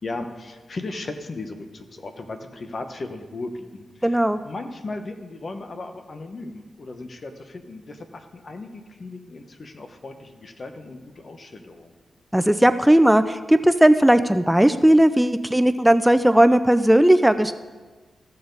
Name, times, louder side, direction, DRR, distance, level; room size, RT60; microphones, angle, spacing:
voice 1, 0.0-11.9, left 2 dB, 55° left, 7 dB, 1.1 m, -36 dB
voice 2, 4.0-4.4 12.3-17.5, right 1 dB, 5° right, 11 dB, 0.4 m, -17 dB
14.5 x 6.8 x 4.0 m, 1.3 s
cardioid pair, 50°, 0 cm